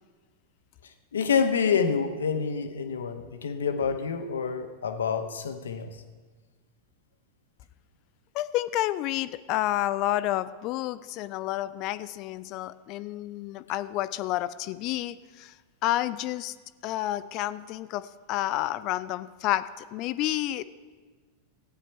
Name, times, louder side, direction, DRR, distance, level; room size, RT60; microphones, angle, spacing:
voice 1, 1.1-5.9, left 6 dB, 65° left, 7 dB, 1.0 m, -27 dB
voice 2, 8.3-15.5 15.8-16.6 16.8-20.6, left 14 dB, 40° left, 15 dB, 0.4 m, -30 dB
15.5 x 9.4 x 4.4 m, 1.4 s
figure-of-eight pair, 90°, 0 cm